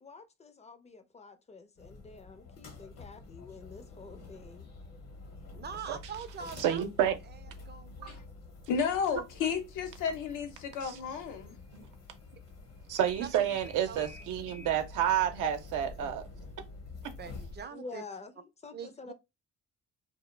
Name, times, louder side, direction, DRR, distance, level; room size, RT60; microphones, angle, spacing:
voice 1, 0.0-4.7 17.7-19.1, left 4 dB, 20° left, 0.4 m, -48 dB
sound 1, 1.8-17.6, left 3 dB, 55° left, 0.8 m, -48 dB
voice 2, 5.5-6.8 7.3-7.4 7.7-8.3 12.3-12.4 13.2-13.4 13.9-14.0 14.3-14.4 17.2-18.0 18.7-19.1, right 6 dB, 35° right, 0.4 m, -43 dB
voice 3, 6.6-7.2 10.8-11.0 11.7-11.8 12.9-16.3, right 10 dB, 85° right, 0.6 m, -29 dB
voice 4, 8.7-11.6, left 6 dB, 90° left, 0.7 m, -32 dB
2.2 x 2.0 x 3.1 m
cardioid pair, 90°, 30 cm